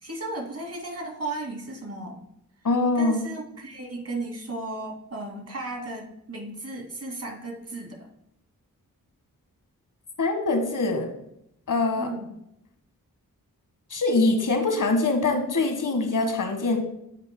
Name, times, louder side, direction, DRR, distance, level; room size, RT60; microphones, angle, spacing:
voice 1, 0.0-2.2 2.9-8.1 12.0-12.3, right 2 dB, 45° right, 1 dB, 2.6 m, -35 dB
voice 2, 2.6-3.2 10.2-11.1 11.7-12.1 13.9-16.8, left 3 dB, 60° left, 5 dB, 1.7 m, -23 dB
15.0 x 5.6 x 2.3 m, 0.79 s
cardioid pair, 45°, 36 cm